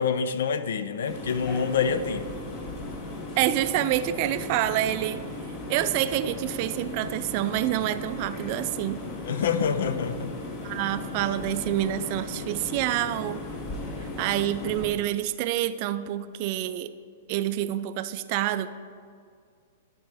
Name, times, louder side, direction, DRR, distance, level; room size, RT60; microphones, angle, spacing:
voice 1, 0.0-2.3 9.3-10.4, left 6 dB, 75° left, 12 dB, 0.5 m, -26 dB
sound 1, 1.1-14.9, left 2 dB, 35° left, 1.1 m, -37 dB
voice 2, 3.4-5.3 5.7-9.0 10.6-13.4 14.2-16.9 17.3-18.7, right 13 dB, 45° right, 11 dB, 0.4 m, -27 dB
13.0 x 4.4 x 3.5 m, 2.1 s
hypercardioid pair, 140°, 0 cm